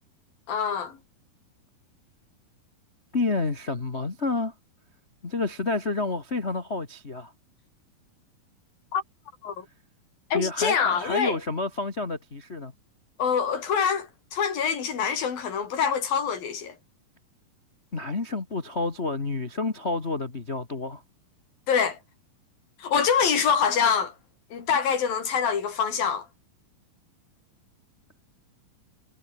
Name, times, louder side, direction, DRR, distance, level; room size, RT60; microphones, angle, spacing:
voice 1, 0.5-1.0 8.9-9.0 9.4-9.7 10.3-11.4 13.2-16.8 21.7-22.0 22.8-24.1 24.5-26.3, left 7 dB, 75° left, 5.4 m, -25 dB
voice 2, 3.1-4.5 5.2-7.3 10.3-12.7 17.9-21.0, left 3 dB, 30° left, 1.3 m, -29 dB
omnidirectional pair, 4.2 m